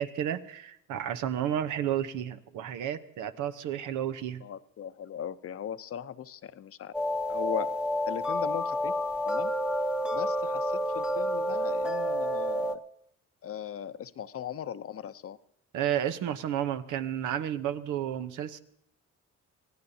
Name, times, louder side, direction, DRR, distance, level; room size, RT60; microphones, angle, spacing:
voice 1, 0.0-4.4 15.7-18.6, right 10 dB, 90° right, 9 dB, 0.9 m, -31 dB
voice 2, 4.4-6.9 7.3-7.7 8.1-9.0 9.2-9.5 10.1-12.8 13.4-15.4, left 9 dB, 50° left, 14 dB, 0.7 m, -38 dB
sound 1, 6.9-12.7, equal, 5° right, 0.8 m, -29 dB
24.5 x 16.0 x 2.8 m, 0.73 s
cardioid pair, 90°, 30 cm